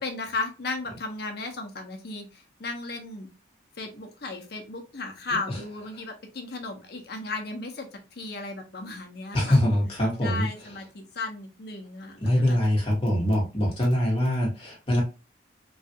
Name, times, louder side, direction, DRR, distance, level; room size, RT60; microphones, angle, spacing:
voice 1, 0.0-3.3 3.8-9.6 10.2-12.6, left 3 dB, 55° left, 3 dB, 0.8 m, -35 dB
voice 2, 9.3-10.5 12.2-15.0, left 1 dB, 30° left, -3 dB, 1.2 m, -23 dB
3.1 x 2.4 x 2.8 m, 0.30 s
head